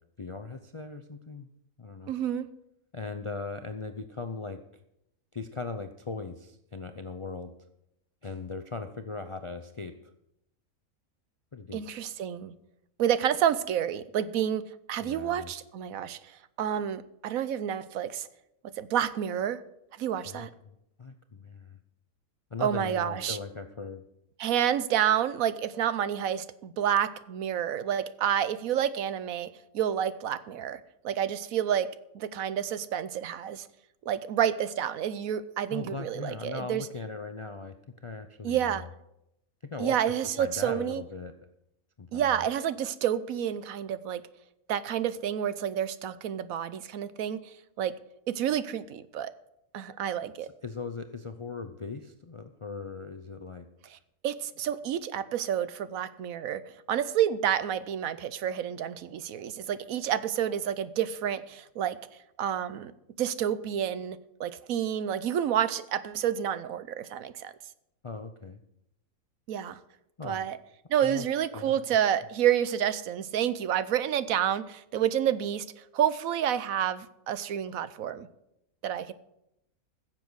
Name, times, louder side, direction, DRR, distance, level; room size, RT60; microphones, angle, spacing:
voice 1, 0.2-1.5 1.8-2.1 2.9-4.7 5.3-7.6 8.2-10.1 11.5-11.9 15.0-15.5 20.2-21.8 22.5-24.1 35.7-37.8 38.0-38.9 39.7-41.5 42.0-42.5 50.6-53.7 68.0-68.6 70.2-70.4 71.0-71.3 71.5-71.7, left 4 dB, 45° left, 8 dB, 0.4 m, -39 dB
voice 2, 2.1-2.5 11.7-12.5 13.0-14.6 14.9-18.3 18.8-19.6 20.0-20.5 22.6-23.4 24.4-33.7 34.1-36.9 38.4-38.8 39.8-41.0 42.1-44.2 44.7-47.4 47.8-47.9 48.3-49.3 49.7-50.5 53.9-54.0 54.2-56.6 56.9-62.0 62.4-62.9 63.2-67.5 69.5-69.8 70.2-70.6 70.9-75.6 75.9-78.3 78.8-79.1, right 10 dB, 75° right, 14 dB, 1.1 m, -29 dB
15.5 x 7.3 x 6.3 m, 0.81 s
omnidirectional pair, 1.5 m